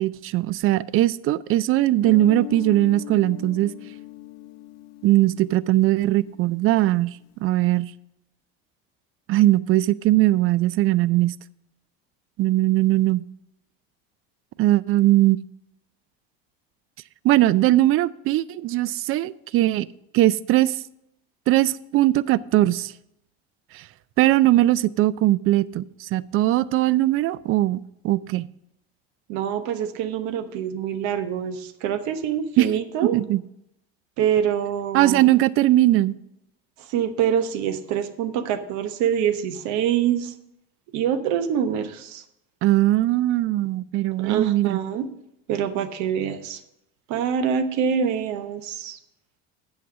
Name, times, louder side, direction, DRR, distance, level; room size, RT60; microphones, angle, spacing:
voice 1, 0.0-3.7 5.0-7.1 7.4-7.9 9.3-11.3 12.4-13.2 14.6-15.4 17.2-19.9 20.1-20.8 21.5-22.9 23.7-23.8 24.2-28.5 32.6-32.7 33.1-33.4 34.9-36.2 42.6-44.8, right 15 dB, 45° right, 20 dB, 0.4 m, -20 dB
Guitar, 2.0-6.6, left 14 dB, 55° left, 0.7 m, -38 dB
voice 2, 29.3-33.2 34.2-35.2 36.8-40.3 40.9-42.2 44.2-45.1 45.5-46.6 47.1-49.0, right 8 dB, 65° right, 11 dB, 1.0 m, -25 dB
8.4 x 5.8 x 6.2 m, 0.81 s
supercardioid pair, 90°, 31 cm